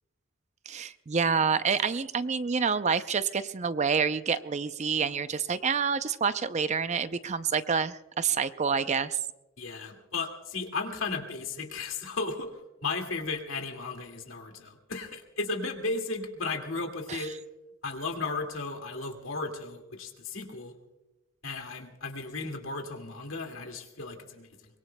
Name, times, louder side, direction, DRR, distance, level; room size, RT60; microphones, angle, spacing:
voice 1, 0.7-9.2 17.1-17.3, right 6 dB, 35° right, 12 dB, 0.5 m, -28 dB
voice 2, 9.6-12.5 12.8-17.3 17.8-20.7 21.4-24.5, left 3 dB, 70° left, 4 dB, 2.2 m, -35 dB
24.0 x 22.5 x 2.2 m, 1.0 s
head